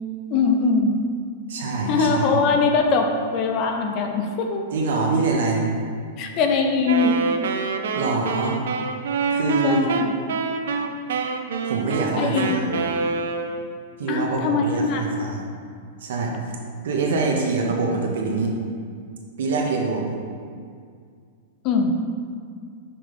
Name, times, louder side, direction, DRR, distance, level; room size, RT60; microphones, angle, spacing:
voice 1, 0.3-1.0 1.9-4.7 6.2-7.2 9.5-10.2 12.2-12.8 14.1-15.1 21.6-22.0, left 4 dB, 30° left, 3 dB, 0.4 m, -22 dB
voice 2, 1.5-2.3 4.7-5.6 7.9-8.6 9.3-9.8 11.6-12.7 14.0-15.4 16.0-16.3 16.8-18.6 19.4-20.1, right 3 dB, 65° right, 0 dB, 1.0 m, -24 dB
Wind instrument woodwind instrument, 6.8-13.8, right 4 dB, 85° right, 0.4 m, -27 dB
5.8 x 3.2 x 5.1 m, 2.1 s
supercardioid pair, 180°, 0 cm